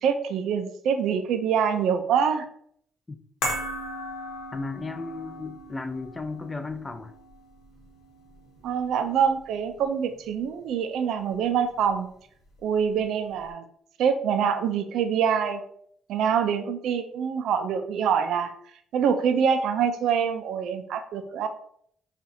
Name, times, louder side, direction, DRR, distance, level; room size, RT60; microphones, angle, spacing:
voice 1, 0.0-2.5 8.6-12.1 12.6-13.6 14.0-15.6 16.1-18.5 18.9-21.5, right 7 dB, 80° right, 8 dB, 0.4 m, -25 dB
sound 1, 3.4-9.8 10.1-10.2, left 1 dB, 90° left, 0.9 m, -37 dB
voice 2, 4.5-7.1, left 3 dB, 20° left, 8 dB, 0.5 m, -34 dB
5.5 x 2.4 x 2.7 m, 0.66 s
cardioid pair, 90°, 0 cm